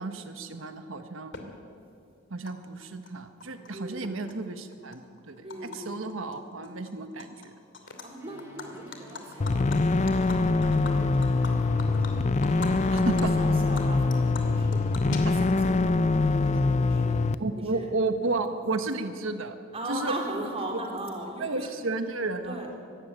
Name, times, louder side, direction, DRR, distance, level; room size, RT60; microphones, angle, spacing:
voice 1, 0.0-1.5 2.3-5.4 5.6-7.5 12.9-13.3 15.1-15.4 17.4-19.6 19.9-20.1 21.4-22.6, right 3 dB, 75° right, 8 dB, 1.3 m, -32 dB
Animal, 1.3-1.4 2.5-2.6 2.8-3.7 4.0-5.8 6.1-6.3 6.6-7.5 7.7-8.0 8.4-12.7 13.0-13.2 13.6-15.7, left 4 dB, 65° left, 2.6 m, -42 dB
voice 2, 3.7-4.2 5.4-6.2 7.8-9.9 10.4-14.8 15.2-17.2 17.7-17.9 19.7-21.7 22.4-22.7, right 1 dB, 30° right, 0 dB, 3.7 m, -39 dB
sound 1, 8.2-15.3, equal, 15° right, 4.0 m, -52 dB
sound 2, 9.4-17.4, left 3 dB, 35° left, 0.5 m, -24 dB
23.5 x 12.5 x 9.1 m, 2.4 s
head